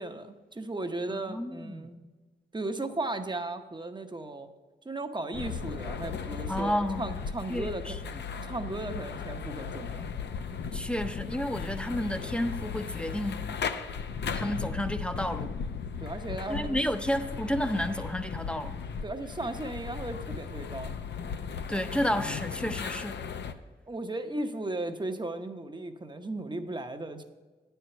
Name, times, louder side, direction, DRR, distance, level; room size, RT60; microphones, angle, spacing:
voice 1, 0.0-2.0 2.5-4.5 4.8-8.0 8.4-10.0 16.0-16.8 19.0-20.9 23.9-27.2, right 2 dB, 25° right, 0.8 m, -36 dB
voice 2, 1.1-1.9 6.5-7.2 7.5-8.2 10.7-13.4 14.3-15.5 16.5-18.8 21.7-23.2, equal, 5° left, 0.6 m, -31 dB
sound 1, 5.3-23.5, left 6 dB, 75° left, 0.5 m, -36 dB
9.2 x 4.6 x 6.7 m
cardioid pair, 55°, 18 cm